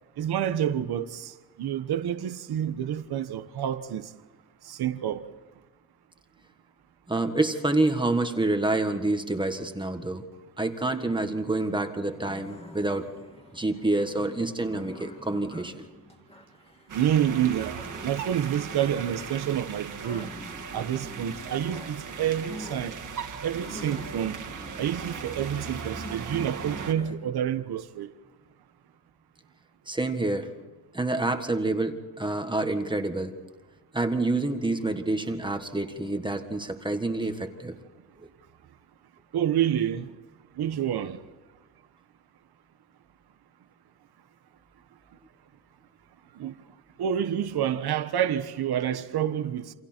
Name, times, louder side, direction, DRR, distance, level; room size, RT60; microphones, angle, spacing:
voice 1, 0.2-4.1 4.6-5.2 16.9-20.3 20.7-23.0 23.4-24.4 24.8-28.1 39.3-40.1 40.6-41.2 46.4-46.5 47.0-49.7, right 10 dB, 80° right, 1.2 m, -28 dB
voice 2, 7.1-10.2 10.6-13.1 13.5-15.9 29.9-30.5 30.9-33.3 33.9-37.7 38.2-38.3, right 2 dB, 10° right, 1.6 m, -27 dB
sound 1, 12.1-27.3, left 1 dB, 15° left, 2.4 m, -45 dB
sound 2, 16.9-26.9, right 6 dB, 55° right, 2.2 m, -38 dB
29.0 x 27.0 x 4.5 m
wide cardioid pair, 165°, 38 cm